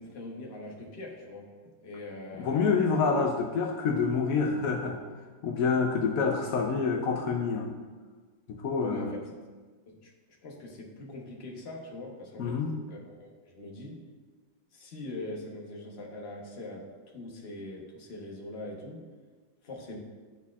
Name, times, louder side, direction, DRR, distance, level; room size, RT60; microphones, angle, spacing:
voice 1, 0.0-1.5 1.8-2.8 8.8-9.3 9.9-10.1 10.4-14.0 14.7-19.0 19.6-20.0, left 2 dB, 45° left, -2 dB, 0.9 m, -42 dB
voice 2, 2.4-5.0 5.4-7.7 8.5-9.1 12.4-12.7, left 5 dB, 85° left, 1 dB, 0.7 m, -27 dB
10.5 x 4.1 x 2.4 m, 1.4 s
omnidirectional pair, 2.1 m